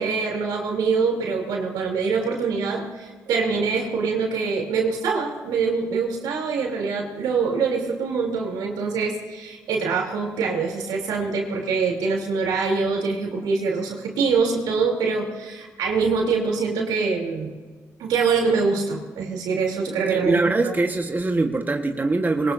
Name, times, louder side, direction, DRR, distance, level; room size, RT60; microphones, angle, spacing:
voice 1, 0.0-17.5 18.0-20.7, right 5 dB, 85° right, 0 dB, 3.4 m, -24 dB
voice 2, 20.1-22.5, right 2 dB, 25° right, 3 dB, 1.4 m, -23 dB
22.0 x 19.0 x 2.7 m, 1.5 s
supercardioid pair, 55°, 7 cm